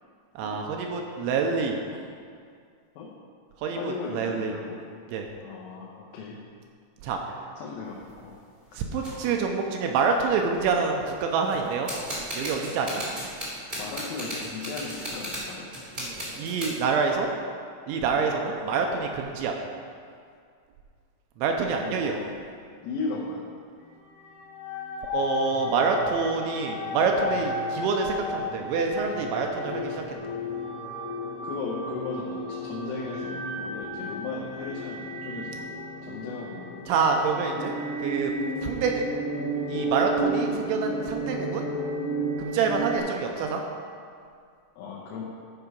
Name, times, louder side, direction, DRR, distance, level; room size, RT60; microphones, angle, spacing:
voice 1, 0.4-1.8 3.6-4.5 5.1-5.3 7.0-7.2 8.7-11.9 12.3-13.0 16.0-17.3 17.9-19.6 21.4-22.2 25.1-30.3 36.9-37.7 38.0-38.3 38.6-39.1 39.7-41.7 42.4-43.6, right 5 dB, 85° right, 2 dB, 2.9 m, -27 dB
voice 2, 3.8-4.8 5.4-6.4 7.6-8.3 13.8-15.6 18.1-18.2 21.8-22.3 22.8-23.4 31.4-35.6 36.0-36.7 44.8-45.2, left 4 dB, 90° left, -4 dB, 3.6 m, -36 dB
sound 1, 7.8-8.2 9.0-9.2 9.8-9.9 10.1-10.6 11.4-16.8, equal, 60° right, 0.5 m, -36 dB
sound 2, 24.1-43.0, equal, 70° left, 2.7 m, -33 dB
14.0 x 4.7 x 5.3 m, 2.2 s
omnidirectional pair, 5.6 m